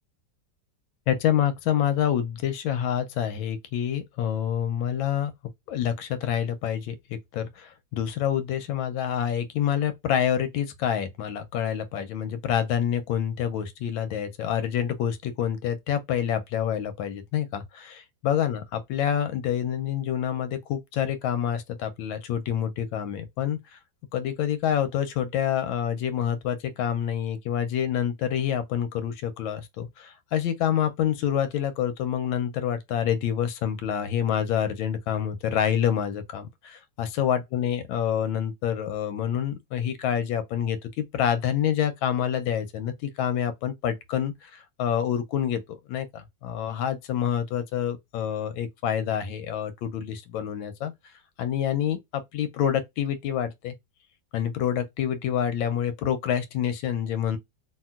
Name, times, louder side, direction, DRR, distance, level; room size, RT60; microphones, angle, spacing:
voice 1, 1.1-5.3 5.7-23.8 24.1-50.9 51.4-53.7 54.3-57.4, left 9 dB, 85° left, 1.4 m, -27 dB
2.9 x 2.8 x 2.3 m
omnidirectional pair, 2.1 m